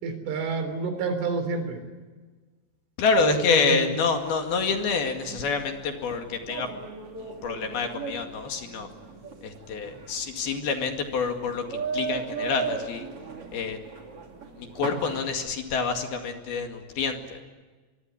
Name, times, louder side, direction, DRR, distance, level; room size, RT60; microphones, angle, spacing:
voice 1, 0.0-1.8 3.2-3.8, right 5 dB, 80° right, 8 dB, 6.1 m, -28 dB
voice 2, 3.0-6.7 7.2-8.9 9.4-13.1 13.5-13.8 14.6-17.4, left 5 dB, 60° left, 5 dB, 3.7 m, -27 dB
sound 1, 4.6-15.2, right 5 dB, 35° right, 2.8 m, -37 dB
24.0 x 23.5 x 9.8 m, 1.4 s
omnidirectional pair, 5.6 m